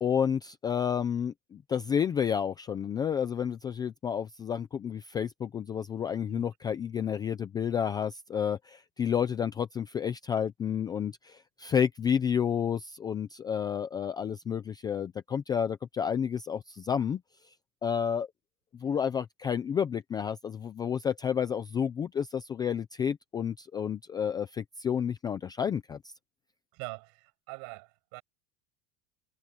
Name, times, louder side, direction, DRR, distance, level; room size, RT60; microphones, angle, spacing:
voice 1, 0.0-17.2 17.8-18.3 18.8-26.0, left 8 dB, 10° left, 0.3 m, -30 dB
voice 2, 26.7-28.2, right 37 dB, 55° right, 7.9 m, -43 dB
cardioid pair, 175°, 35 cm